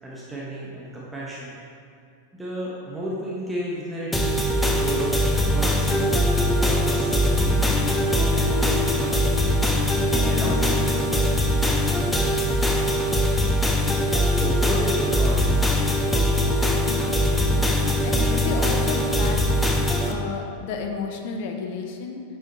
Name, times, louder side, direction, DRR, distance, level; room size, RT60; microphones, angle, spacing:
voice 1, 0.0-1.6 2.3-5.1 5.5-6.0 6.6-7.8 8.2-9.3 10.3-11.3 13.9-14.0 14.3-15.6, right 1 dB, 5° right, -6 dB, 1.2 m, -33 dB
sound 1, 4.1-20.1, left 1 dB, 10° left, 0.8 m, -21 dB
voice 2, 18.0-19.4 20.0-22.2, left 5 dB, 50° left, 4 dB, 0.9 m, -32 dB
8.4 x 6.3 x 4.1 m, 2.3 s
figure-of-eight pair, 90°, 0 cm